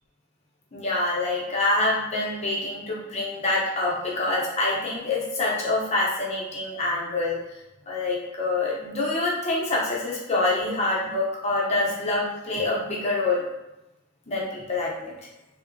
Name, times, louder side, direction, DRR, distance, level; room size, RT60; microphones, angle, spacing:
voice 1, 0.7-7.4 7.9-13.4 14.3-15.1, left 2 dB, 30° left, -4 dB, 0.6 m, -26 dB
2.8 x 2.1 x 2.5 m, 0.96 s
head